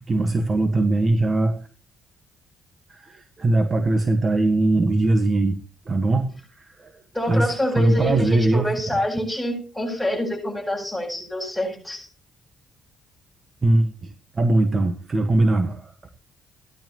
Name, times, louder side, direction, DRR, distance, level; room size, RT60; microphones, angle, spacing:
voice 1, 0.1-1.6 2.9-5.6 5.9-6.3 6.6-6.9 7.3-8.7 13.6-15.9, right 2 dB, 35° right, 8 dB, 1.5 m, -21 dB
voice 2, 7.1-12.1, left 1 dB, ahead, 0 dB, 7.8 m, -26 dB
16.5 x 12.0 x 3.0 m, 0.39 s
cardioid pair, 90°, 0 cm